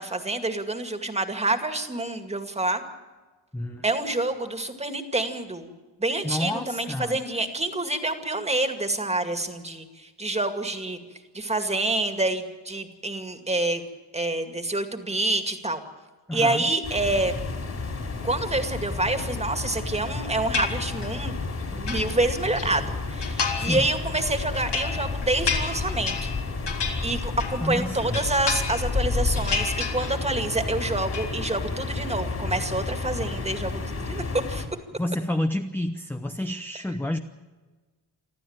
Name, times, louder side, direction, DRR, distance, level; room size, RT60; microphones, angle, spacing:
voice 1, 0.0-2.8 3.8-5.7 6.0-11.0 11.3-13.8 14.1-15.8 16.3-17.4 18.2-21.3 21.7-26.3 27.0-34.7, right 2 dB, 15° right, 7 dB, 2.2 m, -27 dB
voice 2, 3.5-3.8 6.2-7.2 16.3-16.6 23.6-23.9 27.6-28.2 35.0-37.2, left 1 dB, 5° left, 6 dB, 0.8 m, -29 dB
sound 1, 16.8-34.7, left 3 dB, 35° left, 4.1 m, -31 dB
sound 2, 20.5-21.2 21.6-22.7 23.2-23.8 24.2-27.7 28.0-29.0 29.3-30.4 30.7-31.3, left 5 dB, 70° left, 3.8 m, -31 dB
25.0 x 14.5 x 8.9 m, 1.3 s
wide cardioid pair, 140°, 43 cm